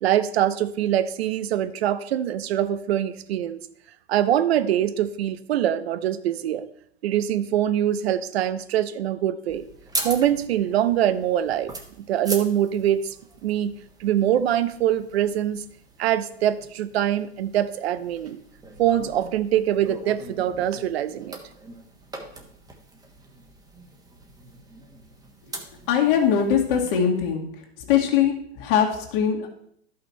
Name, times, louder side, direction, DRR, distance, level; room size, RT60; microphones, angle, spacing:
voice 1, 0.0-3.6 4.1-6.6 7.0-9.6 10.0-13.1 13.4-15.6 16.0-18.4 18.8-21.4, right 11 dB, 70° right, 14 dB, 0.8 m, -24 dB
sound 1, 9.5-26.9, right 2 dB, 10° right, 1.2 m, -40 dB
voice 2, 25.9-27.5 27.9-29.5, left 8 dB, 55° left, 1 dB, 2.1 m, -21 dB
11.5 x 5.7 x 4.3 m, 0.67 s
hypercardioid pair, 125°, 32 cm